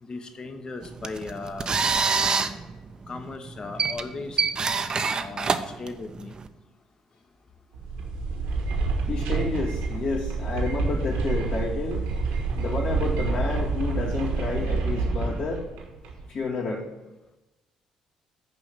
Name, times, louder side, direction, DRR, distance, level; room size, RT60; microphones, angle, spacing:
voice 1, 0.0-1.7 2.1-2.6 3.1-4.5 5.2-6.4, left 3 dB, 40° left, 7 dB, 1.0 m, -37 dB
sound 1, 0.8-6.5, right 5 dB, 40° right, 0.6 m, -27 dB
sound 2, 7.7-16.3, right 3 dB, 75° right, 1.3 m, -28 dB
voice 2, 9.1-12.0 12.6-15.6 16.3-16.9, left 3 dB, 65° left, -5 dB, 2.2 m, -30 dB
6.8 x 4.9 x 6.8 m, 1.0 s
hypercardioid pair, 50°, 2 cm